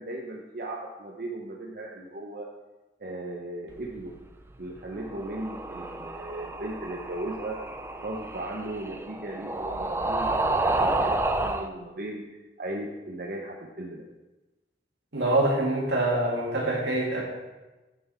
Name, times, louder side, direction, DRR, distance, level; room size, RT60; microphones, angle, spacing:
voice 1, 0.0-2.5 3.0-4.1 4.6-7.6 7.9-12.2 12.6-14.0, right 1 dB, 55° right, -1 dB, 0.8 m, -37 dB
sound 1, 5.0-11.7, right 2 dB, 15° right, 0.3 m, -30 dB
voice 2, 15.1-17.2, right 2 dB, 85° right, -2 dB, 2.3 m, -25 dB
9.2 x 5.9 x 4.4 m, 1.1 s
head